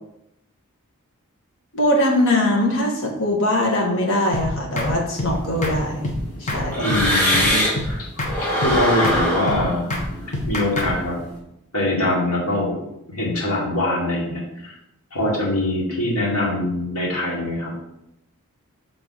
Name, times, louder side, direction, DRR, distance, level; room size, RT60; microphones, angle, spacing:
voice 1, 1.7-6.9, left 1 dB, 60° left, -1 dB, 1.3 m, -21 dB
sound 1, 4.3-4.5 4.8-4.9 5.2-5.3 5.6-5.8 6.0-6.2 6.5-6.6 6.9-7.5 7.7-7.9 8.2-8.3 8.6-8.8 9.0-9.2 9.5-9.6 9.9-10.1 10.3-10.9, left 2 dB, 35° left, 1.1 m, -26 dB
sound 2, 5.3-7.9 8.2-11.3, equal, 10° left, 2.0 m, -24 dB
voice 2, 6.8-9.9 10.5-11.2 11.7-12.8 13.1-14.8 15.1-17.7, left 1 dB, 80° left, -4 dB, 2.1 m, -23 dB
7.4 x 3.8 x 4.0 m, 0.85 s
head